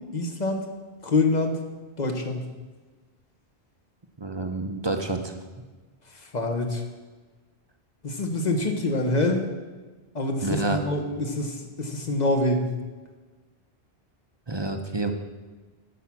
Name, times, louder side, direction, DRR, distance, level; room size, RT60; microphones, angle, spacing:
voice 1, 0.1-0.6 1.0-1.6 2.0-2.5 6.3-6.8 8.0-9.4 10.1-12.7, left 2 dB, 40° left, 4 dB, 1.2 m, -25 dB
voice 2, 4.2-5.4 10.4-10.8 14.5-15.1, right 2 dB, 30° right, 6 dB, 0.6 m, -28 dB
9.0 x 7.3 x 6.0 m, 1.3 s
omnidirectional pair, 1.1 m